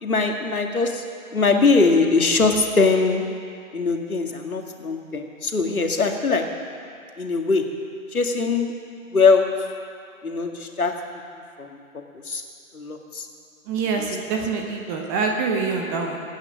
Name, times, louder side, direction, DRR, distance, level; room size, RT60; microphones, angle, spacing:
voice 1, 0.0-1.0 1.3-3.2 3.7-6.4 7.2-7.6 8.1-8.7 9.1-9.5 10.2-10.9 11.6-11.8 12.3-12.4 12.7-13.3 14.0-14.1, left 4 dB, 75° left, 3 dB, 2.1 m, -21 dB
voice 2, 13.7-16.2, right 4 dB, 15° right, 2 dB, 0.7 m, -25 dB
23.0 x 9.6 x 6.4 m, 2.4 s
figure-of-eight pair, 135°, 43 cm